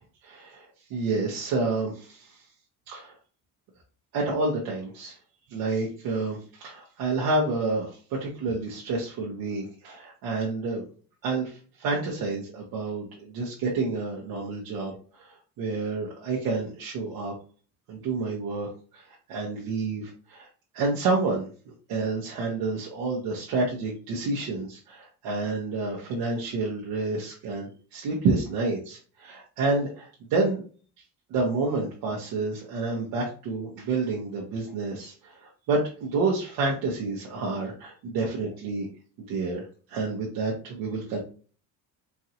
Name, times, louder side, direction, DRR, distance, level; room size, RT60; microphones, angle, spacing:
voice 1, 0.2-0.6 0.9-2.4 2.9-3.1 4.1-5.1 5.5-10.8 11.2-17.3 17.9-18.7 18.9-20.5 20.7-21.5 21.9-30.6 31.3-38.9 39.3-41.2, right 3 dB, 90° right, -3 dB, 1.1 m, -29 dB
4.5 x 2.5 x 2.8 m, 0.39 s
cardioid pair, 140°, 35 cm